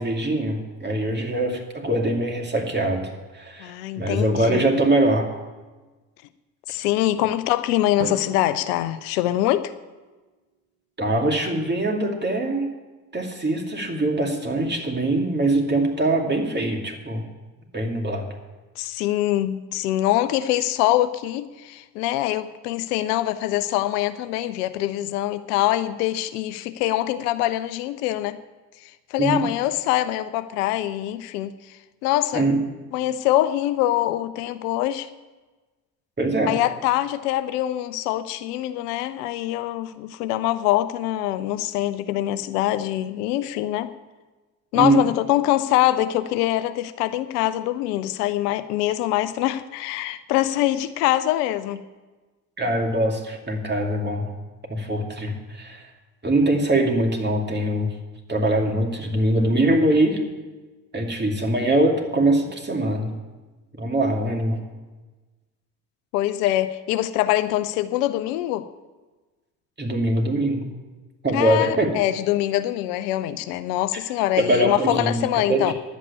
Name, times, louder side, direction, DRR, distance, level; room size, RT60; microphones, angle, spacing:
voice 1, 0.0-3.1 3.3-5.3 11.0-12.7 13.1-17.2 17.7-18.3 29.2-29.4 32.3-32.6 36.2-36.5 44.7-45.0 52.6-54.3 54.7-55.8 56.2-57.9 58.3-60.2 60.9-63.1 63.8-64.6 69.8-70.7 71.2-71.9 74.4-75.2 75.5-75.7, right 1 dB, 20° right, 1 dB, 2.5 m, -22 dB
voice 2, 3.6-4.7 6.7-9.7 18.8-28.4 28.8-32.5 32.9-35.1 36.5-43.9 44.7-51.8 66.1-68.6 71.3-75.7, left 14 dB, 70° left, 13 dB, 0.7 m, -24 dB
Drum, 8.0-10.1, right 7 dB, 85° right, 0.9 m, -39 dB
11.0 x 8.3 x 8.4 m, 1.2 s
hypercardioid pair, 50°, 48 cm